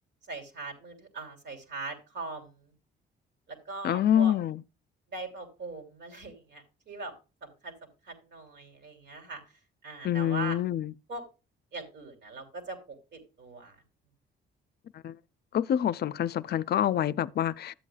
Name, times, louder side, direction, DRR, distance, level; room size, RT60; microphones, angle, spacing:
voice 1, 0.3-2.5 3.7-4.3 5.1-7.1 7.4-7.7 8.1-9.4 9.8-10.6 11.1-11.2 11.7-13.7, right 3 dB, 60° right, 3.1 m, -40 dB
voice 2, 3.8-4.6 10.0-10.9 15.0-15.2 15.5-17.7, left 10 dB, 55° left, 0.5 m, -26 dB
12.5 x 8.3 x 2.3 m
cardioid pair, 90°, 20 cm